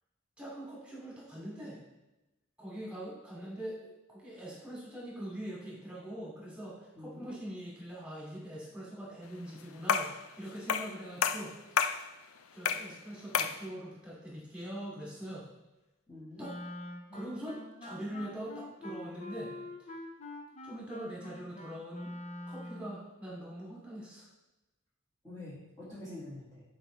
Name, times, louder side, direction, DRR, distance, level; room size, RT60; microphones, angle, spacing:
voice 1, 0.4-1.8 2.6-11.5 12.5-15.4 16.4-16.5 17.1-19.5 19.8-19.9 20.6-22.1 22.5-24.2, right 1 dB, 5° right, -6 dB, 2.7 m, -43 dB
voice 2, 7.0-7.3 16.1-16.5 25.2-26.6, left 1 dB, 15° left, -11 dB, 2.1 m, -46 dB
sound 1, 9.9-10.2 10.7-10.9 11.2-12.0 12.6-12.9 13.3-13.6, left 7 dB, 80° left, 0.5 m, -29 dB
Wind instrument woodwind instrument, 16.4-23.0, left 1 dB, 35° left, 0.7 m, -45 dB
10.0 x 5.0 x 3.4 m, 1.0 s
head